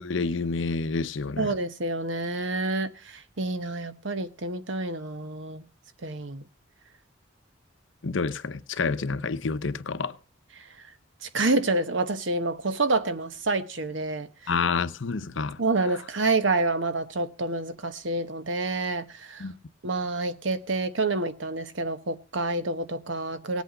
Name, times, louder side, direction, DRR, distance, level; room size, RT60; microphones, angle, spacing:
voice 1, 0.0-1.5 8.0-10.1 14.5-16.0 19.4-19.5, left 4 dB, 80° left, 0.8 m, -29 dB
voice 2, 1.4-2.9 3.4-5.6 6.0-6.4 11.3-14.3 15.6-19.4 19.8-23.6, right 2 dB, 75° right, 1.1 m, -28 dB
18.0 x 8.4 x 5.1 m
head